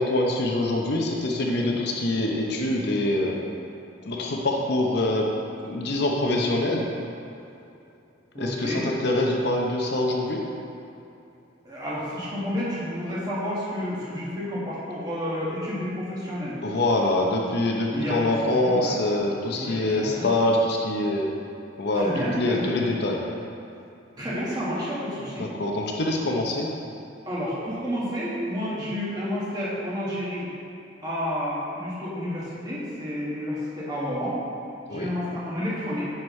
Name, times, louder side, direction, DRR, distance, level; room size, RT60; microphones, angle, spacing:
voice 1, 0.0-3.5 4.1-5.3 5.6-6.9 8.4-10.4 16.6-21.3 21.8-23.3 25.4-26.7 34.9-35.1, left 1 dB, 55° left, 0 dB, 0.7 m, -25 dB
voice 2, 8.3-8.9 11.6-16.6 17.9-18.3 18.6-19.0 19.5-20.3 21.9-23.0 24.2-25.5 27.2-30.5 31.0-34.4 34.9-36.1, equal, 20° right, -8 dB, 1.7 m, -30 dB
9.2 x 5.9 x 3.2 m, 2.7 s
head